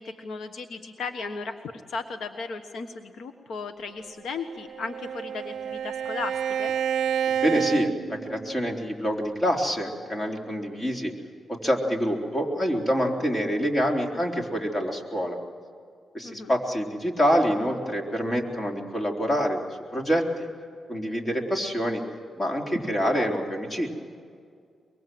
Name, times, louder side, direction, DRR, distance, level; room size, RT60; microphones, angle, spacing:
voice 1, 0.0-6.3 6.6-6.7 16.2-16.5 23.1-23.3, left 4 dB, 80° left, 7 dB, 1.3 m, -35 dB
Bowed string instrument, 4.3-8.8, right 8 dB, 80° right, 0.5 m, -29 dB
voice 2, 7.3-11.1 11.5-15.4 16.1-19.6 19.9-20.5 20.9-22.0 22.4-23.9, equal, 30° left, 1 dB, 3.8 m, -26 dB
23.5 x 23.5 x 7.8 m, 2.2 s
cardioid pair, 85°, 0 cm